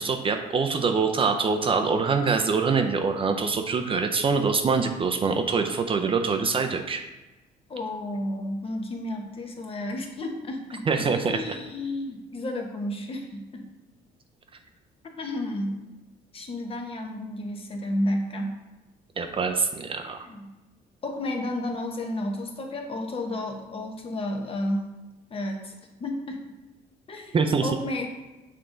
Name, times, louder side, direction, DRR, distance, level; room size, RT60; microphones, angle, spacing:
voice 1, 0.0-7.0 10.9-11.4 19.2-20.3 27.3-27.7, right 5 dB, 30° right, 5 dB, 0.5 m, -24 dB
voice 2, 7.7-13.7 15.1-15.8 16.3-18.5 20.0-20.5 21.0-24.8 25.3-25.7 26.0-26.4 27.1-28.1, left 1 dB, 35° left, 3 dB, 1.0 m, -32 dB
6.8 x 3.7 x 3.8 m, 1.1 s
cardioid pair, 110°, 17 cm